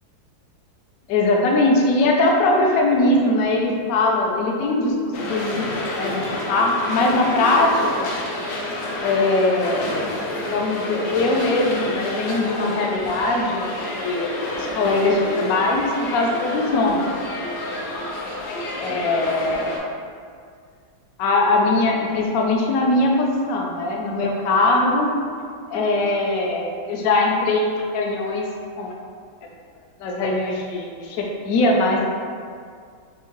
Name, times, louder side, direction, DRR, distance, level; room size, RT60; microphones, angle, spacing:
voice 1, 1.1-6.2 6.5-8.1 9.0-10.1 10.5-17.1 18.8-19.8 21.2-25.1 25.7-28.5 28.8-28.9 30.0-32.1, left 2 dB, 65° left, 0 dB, 0.9 m, -21 dB
sound 1, 5.1-19.8, left 1 dB, 85° left, 1.5 m, -29 dB
5.5 x 2.8 x 3.0 m, 2.1 s
omnidirectional pair, 2.0 m